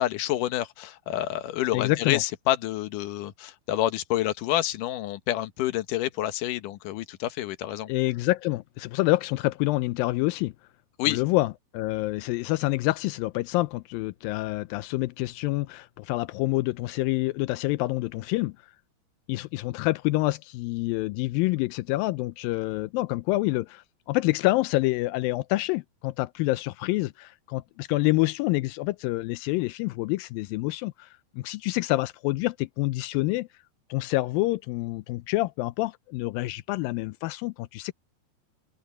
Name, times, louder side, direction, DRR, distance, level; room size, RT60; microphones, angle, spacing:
voice 1, 0.0-7.9 11.0-11.2, left 13 dB, 65° left, 2.3 m, -28 dB
voice 2, 1.7-2.2 7.9-10.5 11.1-18.5 19.3-31.1 31.4-33.5 33.9-37.9, left 19 dB, 85° left, 2.1 m, -27 dB
open air
omnidirectional pair, 4.6 m